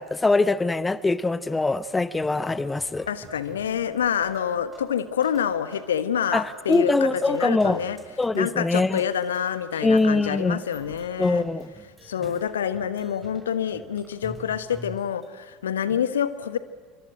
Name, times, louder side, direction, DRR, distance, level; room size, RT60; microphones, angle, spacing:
voice 1, 0.0-3.1 6.3-7.8 8.2-9.0 9.8-10.6 11.2-11.7, left 3 dB, 15° left, 0.8 m, -23 dB
sound 1, 2.2-15.3, right 1 dB, 5° right, 7.2 m, -47 dB
voice 2, 3.1-8.0 8.3-11.4 12.0-16.6, left 8 dB, 75° left, 1.2 m, -27 dB
27.0 x 24.0 x 8.9 m
figure-of-eight pair, 65°, 0 cm